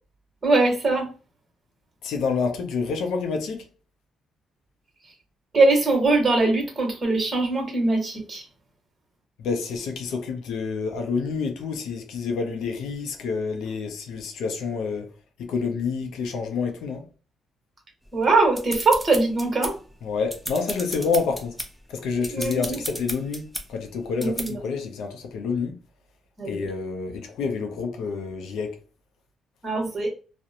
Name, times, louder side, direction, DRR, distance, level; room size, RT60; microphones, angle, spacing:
voice 1, 0.4-1.1 5.5-8.4 18.1-19.7 22.3-22.8 24.2-24.6 26.4-26.7 29.6-30.1, right 3 dB, 35° right, 1.2 m, -22 dB
voice 2, 2.0-3.6 9.4-15.1 15.4-17.0 20.0-21.5 21.9-23.4 23.7-25.7 26.5-28.8, left 5 dB, 80° left, 0.5 m, -28 dB
sound 1, 18.2-19.9 20.2-21.7 22.2-23.7 24.2-24.5, equal, 5° left, 0.6 m, -33 dB
2.5 x 2.1 x 2.8 m
cardioid pair, 90°, 0 cm